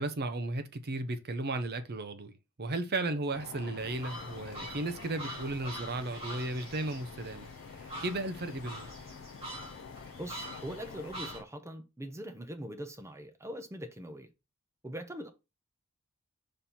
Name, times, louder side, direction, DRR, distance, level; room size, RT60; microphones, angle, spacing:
voice 1, 0.0-8.9, right 2 dB, 45° right, 0.8 m, -35 dB
sound 1, 3.3-11.4, left 6 dB, 55° left, 0.4 m, -48 dB
sound 2, 3.8-11.4, right 1 dB, 30° right, 2.8 m, -45 dB
voice 2, 10.2-14.3 14.8-15.3, equal, 15° right, 0.8 m, -42 dB
5.3 x 4.3 x 4.3 m
head